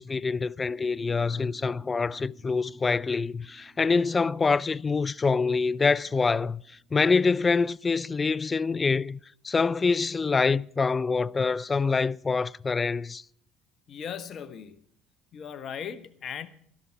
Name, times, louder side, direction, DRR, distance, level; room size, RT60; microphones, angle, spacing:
voice 1, 0.0-6.6 6.9-9.2 9.4-13.2, left 4 dB, 25° left, 0.4 m, -25 dB
sound 1, 0.7-7.1, right 5 dB, 70° right, 4.0 m, -58 dB
voice 2, 13.9-14.8 15.3-16.5, left 8 dB, 50° left, 1.3 m, -38 dB
12.5 x 11.5 x 4.5 m
hypercardioid pair, 70°, 0 cm